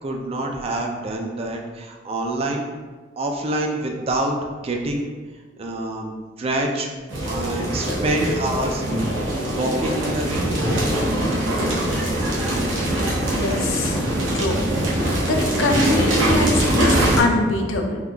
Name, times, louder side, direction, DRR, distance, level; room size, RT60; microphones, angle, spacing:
voice 1, 0.0-2.7 3.2-5.1 5.6-6.9 7.3-8.8 9.5-10.5, right 1 dB, 30° right, 2 dB, 0.3 m, -26 dB
sound 1, 7.1-17.2, right 1 dB, 90° right, 0.8 m, -22 dB
voice 2, 13.2-14.0 14.3-14.7 15.3-18.0, left 2 dB, 90° left, 2 dB, 0.4 m, -23 dB
3.7 x 2.8 x 2.2 m, 1.4 s
head